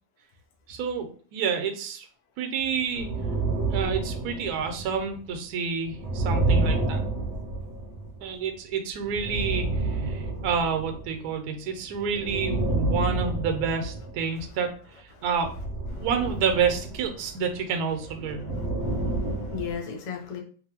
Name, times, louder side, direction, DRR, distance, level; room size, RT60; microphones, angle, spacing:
voice 1, 0.7-2.1 2.4-3.1 3.7-7.0 8.2-14.7 15.0-15.5 16.0-18.5, right 6 dB, 80° right, 6 dB, 1.1 m, -29 dB
sound 1, 2.8-5.2 5.8-8.5 9.0-11.5 11.8-14.7 15.2-19.8, right 2 dB, 60° right, 0.7 m, -29 dB
voice 2, 18.8-20.4, left 7 dB, 65° left, -1 dB, 0.4 m, -36 dB
2.9 x 2.6 x 2.8 m, 0.42 s
omnidirectional pair, 1.7 m